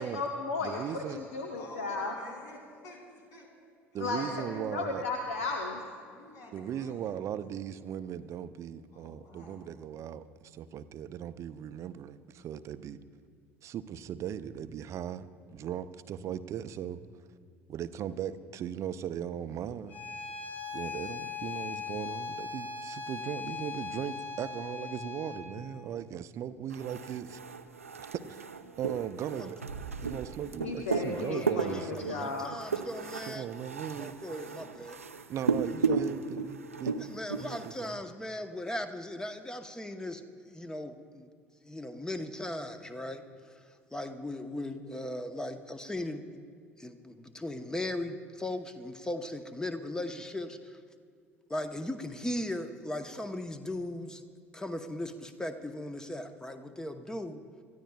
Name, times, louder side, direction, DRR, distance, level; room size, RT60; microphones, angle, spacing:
voice 1, 0.0-2.1 4.0-5.8 30.6-32.6, left 3 dB, 70° left, 1.0 m, -34 dB
voice 2, 0.6-1.2 3.9-5.0 6.5-13.0 13.6-17.0 17.7-19.9 20.7-27.4 28.1-28.5 28.8-29.6 30.0-32.3 33.3-34.1 35.3-38.0, right 9 dB, 45° right, 0.6 m, -38 dB
voice 3, 1.5-3.5 3.9-4.6 5.7-7.2 8.9-9.7, left 1 dB, 50° left, 3.6 m, -51 dB
Bowed string instrument, 19.9-25.5, left 5 dB, 25° left, 1.9 m, -39 dB
sound 1, 26.7-37.9, right 5 dB, 85° right, 0.5 m, -35 dB
voice 4, 31.1-33.5 34.0-35.0 37.0-41.3 41.6-43.2 43.9-46.4 46.8-50.8 51.5-54.2 54.5-57.4, left 1 dB, 10° left, 1.0 m, -38 dB
27.5 x 14.0 x 2.4 m
figure-of-eight pair, 60°, 7 cm